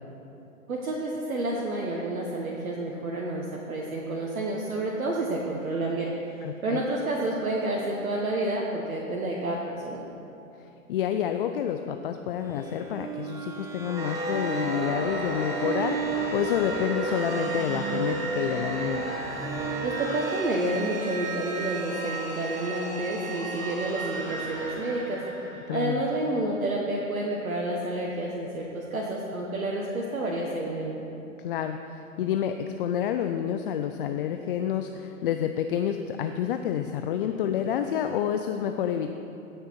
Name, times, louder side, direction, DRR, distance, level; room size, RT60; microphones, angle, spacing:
voice 1, 0.7-10.1 19.8-25.2 25.7-31.1, right 1 dB, 75° right, -2 dB, 1.4 m, -30 dB
voice 2, 6.4-6.8 10.9-19.2 25.7-26.0 31.4-39.1, left 9 dB, 40° left, 7 dB, 0.5 m, -29 dB
sound 1, 12.5-22.8, right 3 dB, 5° right, 0.7 m, -34 dB
sound 2, 14.0-26.5, right 3 dB, 35° right, 2.7 m, -35 dB
16.5 x 6.7 x 4.5 m, 2.9 s
figure-of-eight pair, 110°, 42 cm